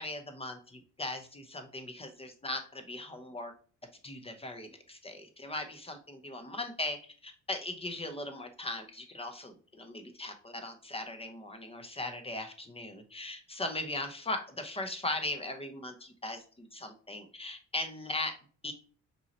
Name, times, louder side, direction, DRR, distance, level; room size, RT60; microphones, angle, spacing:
voice 1, 0.0-3.5 4.0-18.3 18.6-18.7, left 2 dB, 20° left, 6 dB, 0.8 m, -39 dB
5.4 x 2.9 x 2.9 m, 0.41 s
cardioid pair, 90°, 30 cm